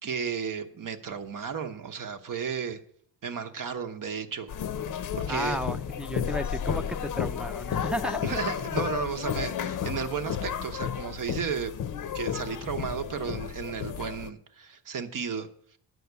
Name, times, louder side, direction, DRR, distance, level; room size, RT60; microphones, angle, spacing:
voice 1, 0.0-2.8 3.2-4.5 5.2-5.6 8.2-11.7 12.1-15.5, right 6 dB, 45° right, 8 dB, 1.0 m, -33 dB
sound 1, 4.5-14.3, left 8 dB, 45° left, 0.7 m, -32 dB
voice 2, 5.3-8.2, equal, ahead, 7 dB, 0.5 m, -33 dB
9.4 x 5.7 x 8.2 m, 0.64 s
cardioid pair, 110°, 43 cm